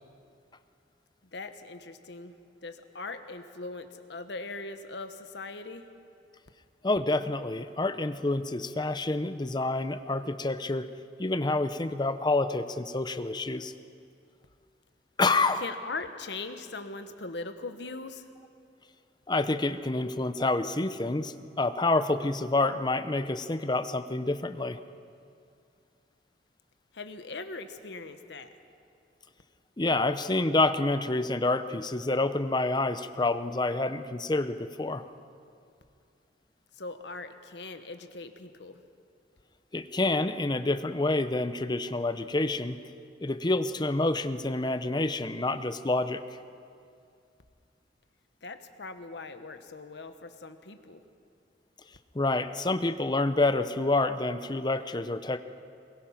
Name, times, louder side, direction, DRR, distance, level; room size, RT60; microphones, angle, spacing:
voice 1, 1.3-2.3 2.6-5.9 15.6-18.2 26.9-28.5 36.8-38.8 48.4-51.0, left 3 dB, 70° left, 8 dB, 1.3 m, -40 dB
voice 2, 6.8-10.9 11.2-13.7 15.2-15.6 19.3-24.8 29.8-35.0 39.7-42.8 43.2-46.4 52.1-55.4, left 2 dB, 25° left, 10 dB, 0.7 m, -28 dB
23.0 x 21.5 x 5.8 m, 2.4 s
head